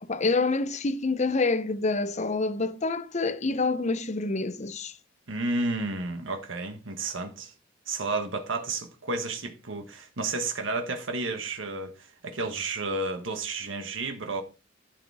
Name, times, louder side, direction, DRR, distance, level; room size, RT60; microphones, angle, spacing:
voice 1, 0.0-4.9, left 3 dB, 35° left, 0.7 m, -27 dB
voice 2, 5.3-7.5 7.9-14.4, right 3 dB, 80° right, 1.5 m, -31 dB
11.5 x 6.9 x 3.6 m
head